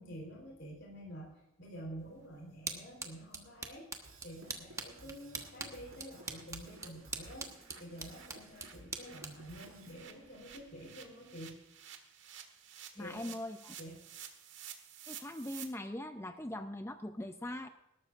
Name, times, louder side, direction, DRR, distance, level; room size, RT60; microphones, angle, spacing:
voice 1, 0.0-11.6 13.0-13.4 13.8-14.1, equal, 60° left, -2 dB, 3.8 m, -49 dB
sound 1, 2.0-10.7, right 4 dB, 15° right, 1.1 m, -46 dB
sound 2, 2.7-2.8 3.1-3.2 3.5-3.7 4.0-4.1 4.4-4.6 4.9-5.0 5.4-5.5 5.7-15.6, right 9 dB, 60° right, 1.6 m, -53 dB
Drum kit / Drum, 4.0-10.0, right 2 dB, 90° right, 5.1 m, -57 dB
voice 2, 13.0-13.8 15.1-17.7, left 1 dB, 10° left, 8 dB, 0.5 m, -41 dB
19.5 x 12.5 x 2.5 m, 0.92 s
head